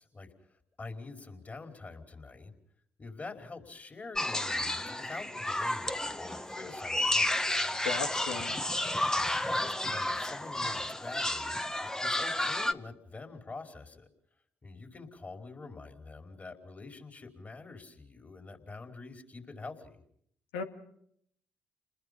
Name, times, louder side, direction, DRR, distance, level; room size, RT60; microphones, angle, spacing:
voice 1, 0.0-2.5 3.0-7.6 9.2-14.1 14.6-20.0, left 3 dB, 35° left, 5 dB, 5.0 m, -46 dB
sound 1, 4.1-12.7, left 1 dB, 10° left, 1.2 m, -31 dB
voice 2, 7.8-8.6 20.5-20.6, left 5 dB, 90° left, 5 dB, 2.0 m, -35 dB
29.5 x 20.5 x 5.5 m, 0.68 s
hypercardioid pair, 55°, 5 cm